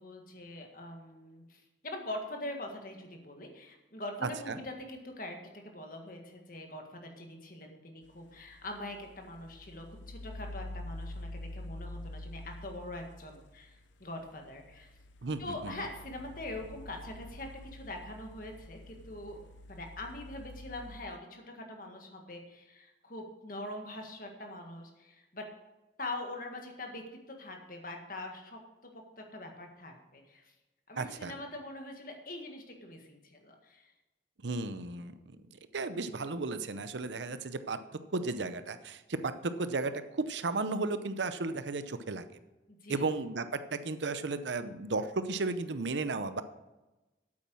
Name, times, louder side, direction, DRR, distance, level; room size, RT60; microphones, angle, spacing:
voice 1, 0.0-5.4 5.6-14.9 15.4-19.4 19.7-25.5 26.0-28.6 28.9-30.5 30.9-33.9 42.7-43.0, left 1 dB, 50° left, 3 dB, 1.7 m, -43 dB
voice 2, 4.2-4.6 15.2-15.7 31.0-31.3 34.4-35.4 35.7-37.8 38.1-42.2 42.9-46.4, right 3 dB, 80° right, 11 dB, 0.7 m, -34 dB
sound 1, 8.1-21.0, left 1 dB, 90° left, 0.7 m, -47 dB
8.7 x 8.5 x 6.2 m, 1.1 s
head